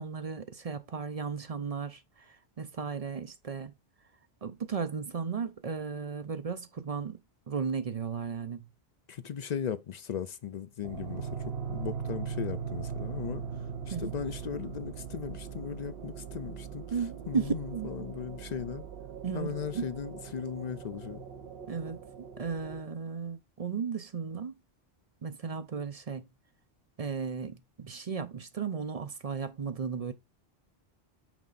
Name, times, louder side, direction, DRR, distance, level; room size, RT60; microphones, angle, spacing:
voice 1, 0.0-3.7 4.4-7.2 7.5-8.6 13.9-14.1 16.9-18.1 19.2-19.9 21.7-24.5 25.2-26.3 27.0-30.1, right 6 dB, 45° right, 0.6 m, -35 dB
voice 2, 9.1-13.4 13.9-16.8 17.3-18.8 19.3-21.2, left 8 dB, 55° left, 0.5 m, -37 dB
sound 1, 10.8-22.8, right 6 dB, 70° right, 1.0 m, -40 dB
6.1 x 4.2 x 3.9 m
omnidirectional pair, 1.0 m